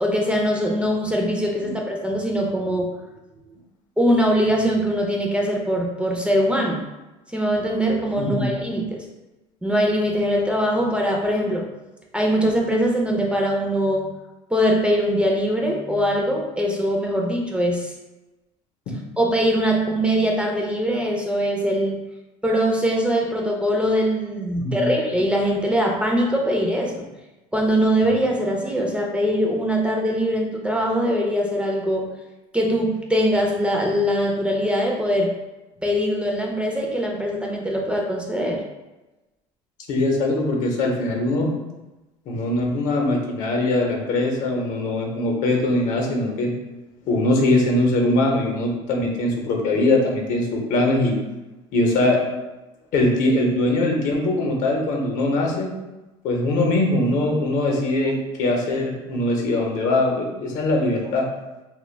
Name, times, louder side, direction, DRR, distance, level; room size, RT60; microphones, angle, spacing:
voice 1, 0.0-2.9 4.0-6.8 7.3-9.0 9.6-11.7 12.1-14.1 14.5-17.9 19.2-22.0 22.4-27.0 27.5-32.1 32.5-35.3 35.8-38.6, equal, 10° right, -1 dB, 0.4 m, -22 dB
voice 2, 8.2-8.5 24.6-24.9 39.9-41.5 42.3-46.5 47.1-51.2 51.7-52.2 52.9-55.7 56.2-61.2, left 2 dB, 65° left, 1 dB, 0.7 m, -21 dB
2.2 x 2.2 x 3.2 m, 1.1 s
supercardioid pair, 100°, 14 cm